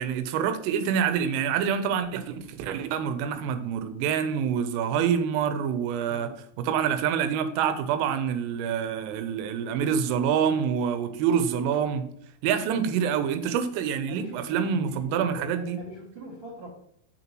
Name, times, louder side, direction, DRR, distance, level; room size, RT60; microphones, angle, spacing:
voice 1, 0.0-6.3 6.6-12.0 12.4-15.8, right 7 dB, 85° right, 10 dB, 3.3 m, -26 dB
voice 2, 6.1-6.4 12.7-12.8 14.1-16.7, right 1 dB, 50° right, -6 dB, 1.5 m, -42 dB
6.8 x 6.7 x 3.0 m, 0.70 s
omnidirectional pair, 5.8 m